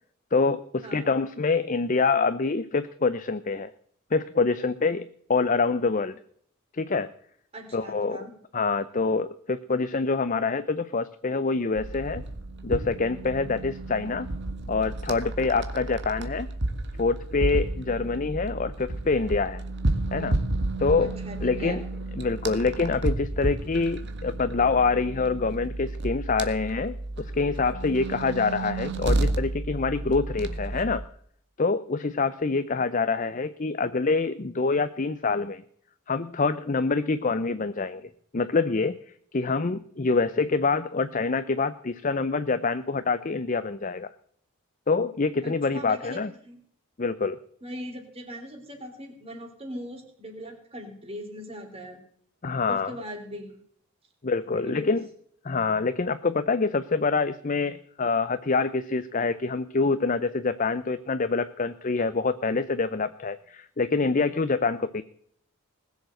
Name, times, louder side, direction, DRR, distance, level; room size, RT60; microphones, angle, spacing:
voice 1, 0.3-3.7 4.1-6.2 6.7-7.1 7.7-8.2 8.5-12.2 12.6-14.3 14.7-16.5 17.0-19.6 20.1-20.4 20.8-21.1 21.4-21.8 22.2-31.0 31.6-35.6 36.1-39.0 39.3-44.1 44.9-46.3 47.0-47.4 52.4-53.0 54.2-55.1 55.4-65.0, left 4 dB, 35° left, 12 dB, 0.6 m, -26 dB
voice 2, 7.5-8.3 21.0-21.8 45.4-46.6 47.6-52.0 52.7-53.6 54.4-54.9, equal, 25° right, 4 dB, 3.5 m, -40 dB
sound 1, 11.7-31.0, right 2 dB, 50° right, 1.7 m, -31 dB
20.5 x 7.2 x 7.7 m, 0.62 s
head